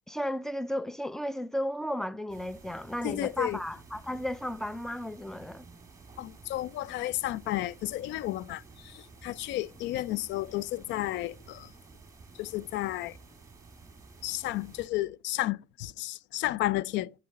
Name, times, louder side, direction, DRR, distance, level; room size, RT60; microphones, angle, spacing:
voice 1, 0.1-5.7, equal, ahead, 0.4 m, -34 dB
sound 1, 2.3-14.9, right 4 dB, 15° right, 1.9 m, -52 dB
voice 2, 3.0-3.6 6.2-11.7 12.4-13.2 14.2-17.1, left 15 dB, 70° left, 0.4 m, -32 dB
8.5 x 6.8 x 5.2 m
cardioid pair, 110°, 20 cm